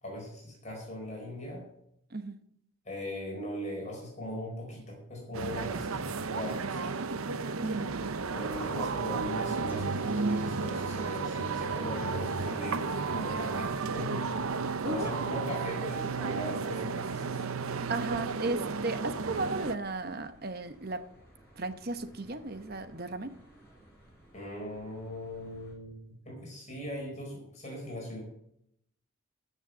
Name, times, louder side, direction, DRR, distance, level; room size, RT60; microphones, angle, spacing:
voice 1, 0.0-1.7 2.8-6.8 8.3-14.2 14.8-17.5 24.3-26.0 26.2-28.2, left 1 dB, 30° left, 4.6 m, -39 dB
sound 1, 5.3-19.8, right 4 dB, 75° right, 0.7 m, -33 dB
Hiss, 9.7-14.0, equal, 10° right, 5.2 m, -57 dB
sound 2, 12.7-25.7, equal, 10° left, 6.2 m, -58 dB
voice 2, 14.8-15.1 17.9-21.1 21.6-23.4, right 3 dB, 45° right, 1.0 m, -35 dB
14.5 x 6.5 x 7.6 m
head